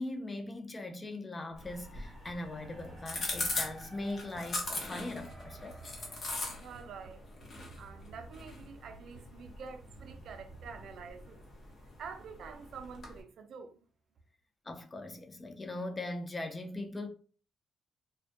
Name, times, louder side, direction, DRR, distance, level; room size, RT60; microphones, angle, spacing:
voice 1, 0.0-5.8 14.7-17.1, left 2 dB, 25° left, 0.4 m, -40 dB
Bass guitar, 1.5-11.1, right 2 dB, 40° right, 1.1 m, -54 dB
sound 1, 1.6-13.2, left 2 dB, 45° left, 0.8 m, -42 dB
sound 2, 1.6-7.7, right 1 dB, 20° right, 0.8 m, -55 dB
voice 2, 6.6-7.3 7.8-11.4 12.0-13.8, right 5 dB, 70° right, 0.4 m, -47 dB
2.4 x 2.2 x 2.5 m
cardioid pair, 90°, 0 cm